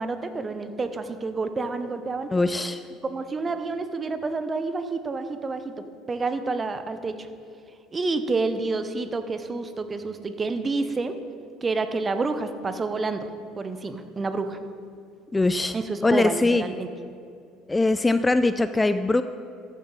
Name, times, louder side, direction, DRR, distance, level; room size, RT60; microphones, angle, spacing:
voice 1, 0.0-2.3 3.1-7.3 7.9-11.2 11.6-13.3 13.6-14.6 15.7-16.9, right 3 dB, 30° right, 9 dB, 0.8 m, -29 dB
voice 2, 2.3-2.8 15.3-15.7 16.0-16.6 17.7-19.2, left 2 dB, 15° left, 11 dB, 0.4 m, -21 dB
14.0 x 7.1 x 3.9 m, 2.4 s
hypercardioid pair, 65°, 0 cm